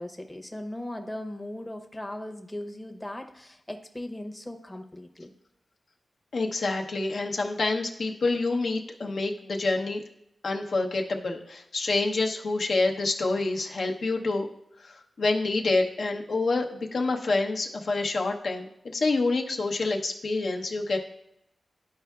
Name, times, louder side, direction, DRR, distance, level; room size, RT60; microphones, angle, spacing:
voice 1, 0.0-5.3, left 1 dB, 15° left, 4 dB, 0.7 m, -38 dB
voice 2, 6.3-10.0 10.4-14.5 14.8-21.0, left 3 dB, 70° left, 1 dB, 0.8 m, -27 dB
11.5 x 4.5 x 2.3 m, 0.79 s
cardioid pair, 75°, 0 cm